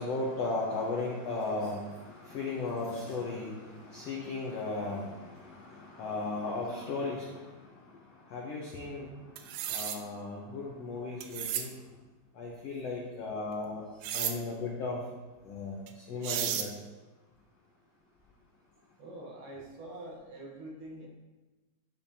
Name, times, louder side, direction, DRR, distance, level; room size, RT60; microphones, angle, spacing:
voice 1, 0.0-7.5 8.3-9.1 9.7-11.7 12.4-13.8 14.1-15.0 15.4-15.8 16.1-16.7, left 3 dB, 85° left, -4 dB, 1.4 m, -36 dB
sound 1, 9.4-10.0 11.2-11.7 14.0-14.4 15.9-16.0 16.2-16.7, right 10 dB, 85° right, 2.0 m, -33 dB
voice 2, 19.0-21.1, right 1 dB, 65° right, -3 dB, 2.6 m, -45 dB
12.0 x 5.3 x 2.8 m, 1.2 s
omnidirectional pair, 4.4 m